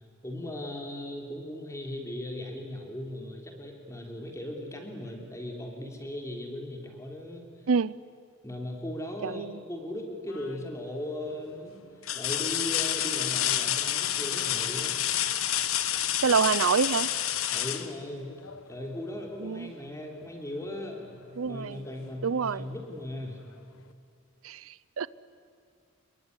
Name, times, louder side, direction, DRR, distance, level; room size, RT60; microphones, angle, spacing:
voice 1, 0.2-7.5 8.4-11.8 12.1-14.9 17.5-18.3 18.7-21.0 21.5-23.4, left 1 dB, 15° left, 2 dB, 3.6 m, -38 dB
voice 2, 9.2-9.6 16.2-17.1 19.4-19.7 21.4-21.8 22.2-22.7 24.4-25.1, right 5 dB, 90° right, 19 dB, 0.6 m, -27 dB
sound 1, 10.3-10.8 11.3-11.4 12.0-18.7 20.5-20.6 21.1-22.1 23.4-23.5, left 11 dB, 90° left, 1.4 m, -29 dB
26.5 x 22.0 x 9.8 m, 2.5 s
head